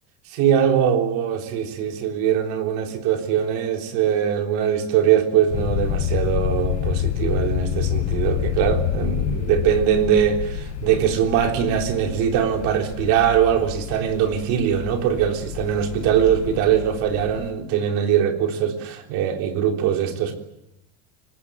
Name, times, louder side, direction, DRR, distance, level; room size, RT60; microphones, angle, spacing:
voice 1, 0.3-20.4, right 9 dB, 45° right, 4 dB, 3.7 m, -21 dB
sound 1, 5.5-17.5, left 12 dB, 40° left, 1.8 m, -28 dB
26.5 x 18.5 x 9.0 m, 0.88 s
cardioid pair, 175°, 38 cm